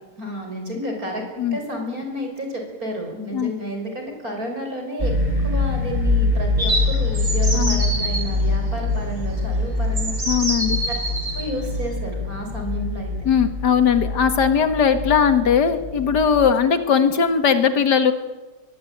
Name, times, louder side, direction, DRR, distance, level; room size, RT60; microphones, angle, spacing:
voice 1, 0.2-1.2 1.5-5.1 5.4-10.2 10.9-11.0 11.3-13.3, equal, 60° right, 3 dB, 6.3 m, -31 dB
sound 1, 5.0-16.5, left 2 dB, 25° right, 4.8 m, -24 dB
sound 2, 6.6-8.2 9.3-9.4 10.0-11.5, right 1 dB, 80° right, 5.7 m, -26 dB
voice 2, 10.3-10.8 13.2-18.1, left 7 dB, 85° left, 9 dB, 2.3 m, -19 dB
22.5 x 21.0 x 9.0 m, 1.2 s
omnidirectional pair, 1.8 m